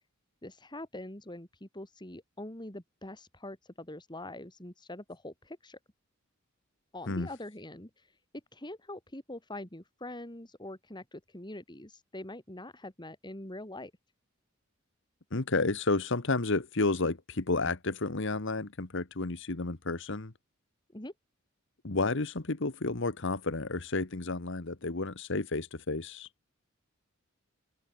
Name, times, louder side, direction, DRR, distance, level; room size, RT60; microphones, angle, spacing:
voice 1, 0.4-5.8 6.9-8.1 8.5-13.9 20.9-21.1, left 1 dB, 20° left, 3.6 m, -44 dB
voice 2, 15.3-20.3 21.8-26.3, left 3 dB, 65° left, 1.4 m, -31 dB
head